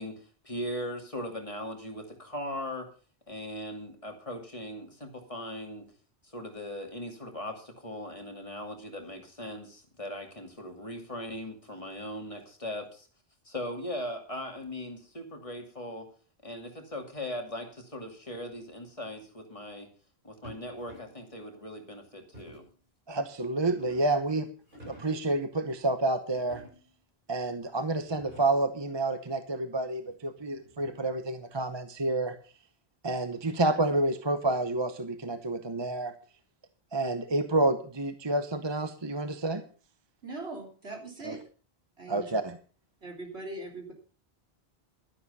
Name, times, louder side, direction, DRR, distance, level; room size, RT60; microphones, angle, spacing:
voice 1, 0.0-2.9 3.3-5.9 6.2-13.1 13.4-16.1 16.4-19.9 20.2-22.6, left 1 dB, 30° left, 3 dB, 2.6 m, -39 dB
sound 1, 20.4-21.3 22.3-22.8 23.4-24.2 24.6-25.3 26.3-27.0 27.6-27.7 28.0-28.7 30.1-31.2, equal, 55° right, 7.6 m, -51 dB
voice 2, 23.1-24.5 24.9-26.6 27.3-32.4 33.0-36.1 36.9-39.6 41.2-41.4 42.1-42.5, right 2 dB, 25° right, 9 dB, 1.0 m, -29 dB
voice 3, 40.2-41.4 42.0-42.4 43.0-43.9, right 2 dB, 90° right, 1 dB, 3.7 m, -41 dB
12.0 x 11.0 x 5.5 m, 0.39 s
omnidirectional pair, 1.1 m